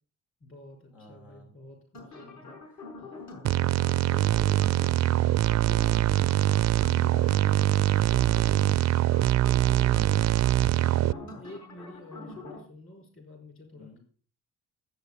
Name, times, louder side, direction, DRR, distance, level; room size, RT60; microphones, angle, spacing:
voice 1, 0.4-2.6 3.0-3.1 3.5-3.8 4.2-5.0 6.2-6.9 9.0-10.4 10.7-14.0, left 2 dB, 45° left, 5 dB, 5.5 m, -50 dB
voice 2, 0.9-1.5 2.2-2.7 3.1-3.6 4.0-4.1 6.9-8.7 10.1-10.2 10.7-10.8 13.7-14.0, left 2 dB, 85° left, 1 dB, 6.1 m, -52 dB
sound 1, 1.9-12.6, left 2 dB, 65° left, 5.9 m, -44 dB
sound 2, 3.4-11.1, right 14 dB, 60° right, 0.5 m, -23 dB
13.0 x 8.4 x 6.9 m, 0.43 s
cardioid pair, 90°, 30 cm